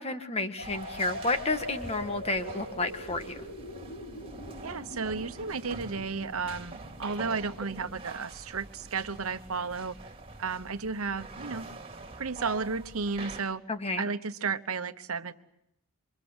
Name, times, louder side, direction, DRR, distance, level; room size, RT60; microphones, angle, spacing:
voice 1, 0.0-3.4 13.7-14.1, left 2 dB, 30° left, 8 dB, 1.7 m, -31 dB
sound 1, 0.6-8.2, left 1 dB, 85° left, 5.2 m, -43 dB
sound 2, 0.6-13.4, right 3 dB, 25° right, 2.9 m, -45 dB
voice 2, 4.6-10.0 10.4-11.6 12.2-13.6 14.0-15.3, right 4 dB, 80° right, 11 dB, 1.1 m, -33 dB
28.0 x 24.5 x 8.0 m, 0.79 s
head